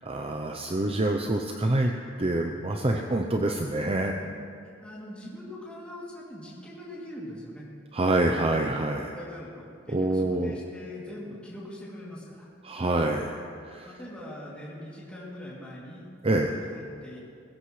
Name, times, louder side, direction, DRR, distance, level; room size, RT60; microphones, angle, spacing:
voice 1, 0.0-1.9 2.2-4.1 7.9-9.1 9.9-10.6 12.6-13.4 13.6-13.9 16.2-16.5, right 2 dB, 30° right, 3 dB, 0.7 m, -26 dB
voice 2, 4.6-7.7 9.1-12.5 13.8-17.2, left 1 dB, 5° left, -7 dB, 2.8 m, -42 dB
21.5 x 16.0 x 3.3 m, 2.5 s
head